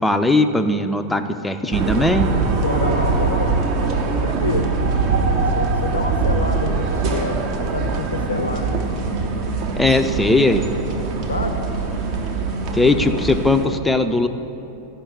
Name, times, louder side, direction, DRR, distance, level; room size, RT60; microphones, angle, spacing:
voice 1, 0.0-2.3 9.8-10.6 12.7-14.3, left 2 dB, 5° left, 7 dB, 0.5 m, -18 dB
sound 1, 1.7-13.7, right 4 dB, 40° right, 1.0 m, -22 dB
voice 2, 2.6-3.6 4.2-4.7 5.5-8.8 11.3-11.6, left 3 dB, 75° left, 6 dB, 0.6 m, -27 dB
12.5 x 5.7 x 6.9 m, 3.0 s
figure-of-eight pair, 90°, 0 cm